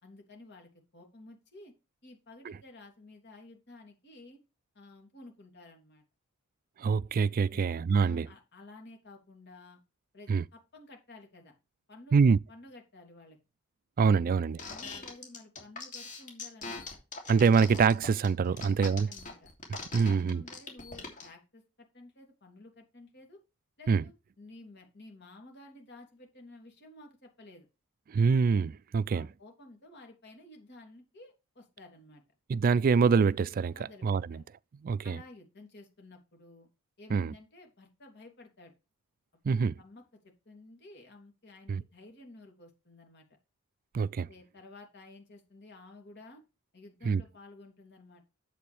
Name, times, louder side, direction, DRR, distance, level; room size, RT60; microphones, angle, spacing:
voice 1, 0.0-1.7 2.0-4.4 4.7-6.0 7.5-7.7 8.0-9.8 10.1-11.5 11.9-13.4 14.5-16.8 18.5-19.5 20.0-23.4 23.8-27.7 29.1-32.2 33.7-34.5 35.0-36.7 37.0-38.7 39.5-40.0 40.4-43.2 44.3-46.4 46.7-48.2, left 2 dB, 55° left, 3.0 m, -53 dB
voice 2, 6.8-8.3 10.3-10.4 12.1-12.4 14.0-14.6 17.3-19.1 19.9-20.5 23.9-24.0 28.1-29.3 32.5-33.7 34.0-34.4 34.8-35.2 37.1-37.3 39.4-39.7 41.7-41.8 43.9-44.3 47.0-47.2, right 5 dB, 40° right, 0.3 m, -25 dB
sound 1, 14.6-21.3, left 3 dB, 40° left, 2.8 m, -41 dB
8.5 x 7.8 x 3.4 m
head